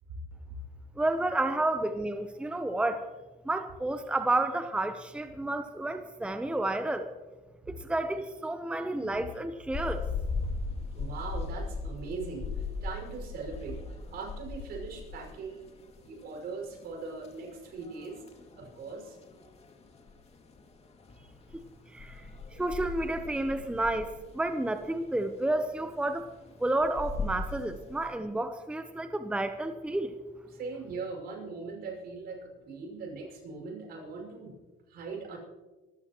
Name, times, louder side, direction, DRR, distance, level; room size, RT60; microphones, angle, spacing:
voice 1, 1.0-3.0 3.4-7.1 7.7-10.0 21.9-22.3 22.6-26.3 26.6-30.1, right 2 dB, 5° right, 9 dB, 0.8 m, -30 dB
sound 1, 9.7-28.1, left 4 dB, 40° left, 2.3 m, -39 dB
voice 2, 10.9-15.7 16.0-18.2 18.5-19.2 30.5-34.5 34.9-35.4, right 4 dB, 70° right, 0 dB, 6.0 m, -40 dB
25.0 x 15.0 x 3.0 m, 1.3 s
cardioid pair, 110°, 17 cm